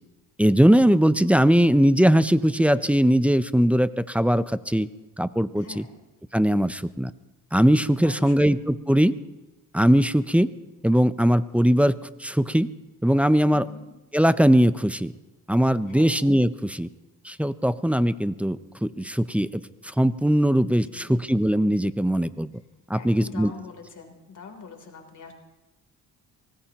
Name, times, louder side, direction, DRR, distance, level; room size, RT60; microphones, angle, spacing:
voice 1, 0.4-4.9 5.2-5.8 6.3-7.1 7.5-9.1 9.7-10.5 10.8-12.7 13.0-13.7 14.1-15.1 15.5-16.9 17.2-22.5 22.9-23.5, equal, 5° right, 14 dB, 0.5 m, -20 dB
voice 2, 5.5-5.9 8.0-8.5 13.5-13.8 15.9-16.1 20.9-21.2 22.9-25.3, left 5 dB, 50° left, 3 dB, 3.4 m, -43 dB
24.5 x 19.0 x 2.9 m, 1.1 s
cardioid pair, 105°, 39 cm